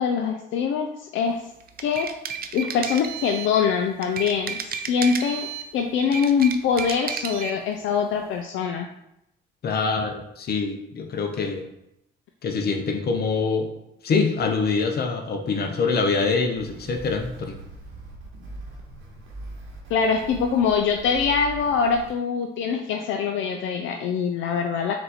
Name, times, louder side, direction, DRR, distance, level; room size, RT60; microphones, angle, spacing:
voice 1, 0.0-1.4 1.8-2.1 2.5-4.6 4.9-8.9 19.9-24.9, left 6 dB, 75° left, 4 dB, 0.4 m, -23 dB
sound 1, 1.6-3.6 4.0-5.7 6.0-7.6, right 7 dB, 50° right, 0.5 m, -32 dB
voice 2, 9.6-11.7 12.4-13.7 14.0-17.6, left 4 dB, 50° left, 4 dB, 0.7 m, -25 dB
sound 2, 16.6-22.1, right 1 dB, 85° right, 1.0 m, -41 dB
4.2 x 2.6 x 4.1 m, 0.82 s
cardioid pair, 90°, 20 cm